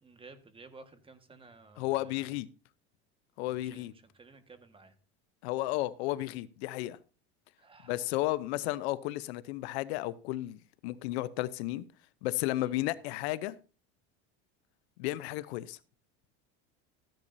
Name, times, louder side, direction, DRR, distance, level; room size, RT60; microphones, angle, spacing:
voice 1, 0.0-2.4 3.5-4.9 7.6-8.1 12.5-12.7, right 3 dB, 15° right, 1.5 m, -55 dB
voice 2, 1.8-2.5 3.4-3.9 5.4-7.0 7.9-11.8 12.2-13.6 15.0-15.8, left 16 dB, 85° left, 0.8 m, -33 dB
14.5 x 10.5 x 2.7 m
supercardioid pair, 120°, 32 cm